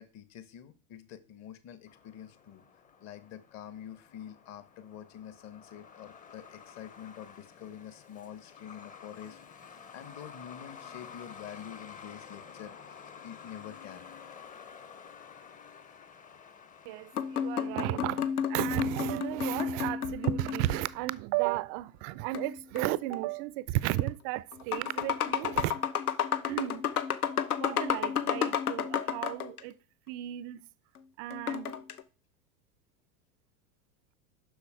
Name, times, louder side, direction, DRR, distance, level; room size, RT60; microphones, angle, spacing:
voice 1, 0.0-2.6 3.0-9.4 9.7-14.1 15.6-15.9, left 10 dB, 35° left, 1.1 m, -47 dB
Truck, 1.9-19.3, left 7 dB, 20° left, 0.7 m, -51 dB
voice 2, 16.9-25.8 26.4-26.9 27.6-29.8 30.1-30.7 31.2-31.8, right 17 dB, 35° right, 0.4 m, -33 dB
sound 1, 17.2-20.9 22.3-23.2 24.0-24.1 24.5-29.6 31.3-32.0, left 8 dB, 75° left, 0.9 m, -32 dB
7.0 x 6.0 x 4.7 m
hypercardioid pair, 90°, 44 cm